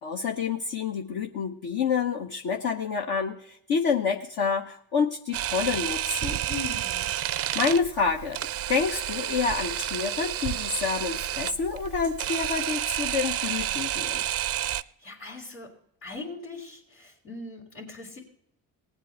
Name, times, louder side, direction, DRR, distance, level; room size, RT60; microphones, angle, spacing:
voice 1, 0.0-6.4 7.5-8.4 8.7-14.2, left 5 dB, 55° left, 1 dB, 1.0 m, -28 dB
Camera, 5.3-14.8, right 12 dB, 35° right, 0.4 m, -30 dB
voice 2, 6.5-7.1 14.6-15.7 16.0-18.2, left 4 dB, 80° left, -10 dB, 3.2 m, -40 dB
19.0 x 8.1 x 4.3 m, 0.72 s
figure-of-eight pair, 45°, 46 cm